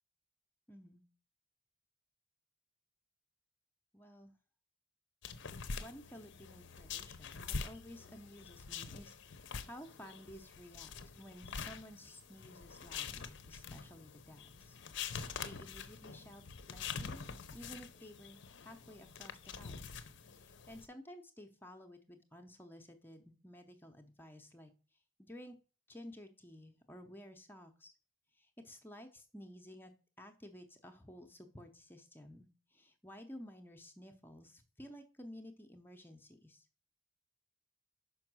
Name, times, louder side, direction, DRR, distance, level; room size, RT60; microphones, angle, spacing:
voice 1, 0.7-1.0 3.9-4.3 5.8-14.8 15.0-16.4 16.7-17.3 17.5-18.4 18.6-24.7 25.2-25.6 25.9-27.9 28.3-36.7, equal, 10° left, 5 dB, 0.6 m, -54 dB
sound 1, 5.2-20.9, left 5 dB, 55° left, 0.6 m, -46 dB
5.8 x 5.3 x 6.1 m, 0.37 s
head